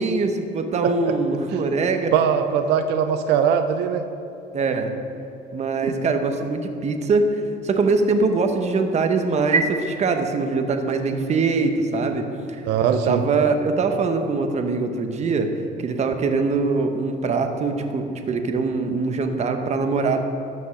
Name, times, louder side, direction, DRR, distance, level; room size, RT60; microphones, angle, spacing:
voice 1, 0.0-2.1 4.5-4.9 5.5-12.3 12.9-15.5 15.8-20.2, right 4 dB, 40° right, 6 dB, 1.0 m, -22 dB
voice 2, 0.8-1.1 2.1-4.0 5.8-5.9 12.6-13.2, right 8 dB, 90° right, 8 dB, 0.6 m, -21 dB
13.0 x 5.4 x 5.8 m, 2.8 s
cardioid pair, 110°, 17 cm